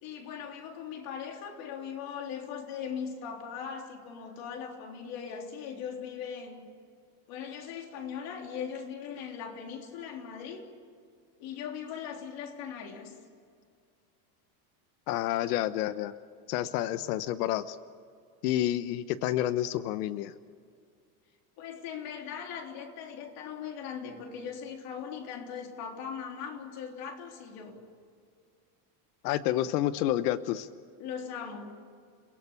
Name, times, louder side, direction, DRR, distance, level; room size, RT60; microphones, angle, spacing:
voice 1, 0.0-6.7 7.3-10.6 11.4-13.2 21.6-27.8 31.0-31.8, left 7 dB, 50° left, 2 dB, 3.6 m, -39 dB
voice 2, 15.1-16.1 16.5-17.8 18.4-20.3 29.2-30.7, left 13 dB, 85° left, 13 dB, 1.1 m, -29 dB
30.0 x 18.0 x 7.0 m, 2.2 s
cardioid pair, 170°, 46 cm